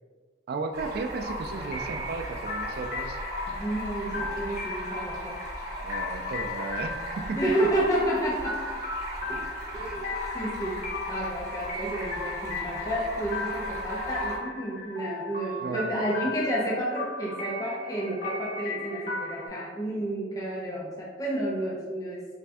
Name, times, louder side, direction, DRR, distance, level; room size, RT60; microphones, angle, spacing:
voice 1, 0.5-3.2 5.8-7.4 9.8-10.4 15.6-16.0, right 4 dB, 60° right, 7 dB, 0.3 m, -35 dB
Stream, 0.7-14.3, equal, 20° right, 1.1 m, -37 dB
sound 1, 1.6-19.5, left 3 dB, 45° left, 0.8 m, -37 dB
voice 2, 3.5-5.4 7.3-8.6 9.2-9.4 9.7-10.1 10.3-22.3, right 1 dB, 20° left, -5 dB, 0.4 m, -30 dB
3.4 x 2.6 x 3.3 m, 1.5 s
head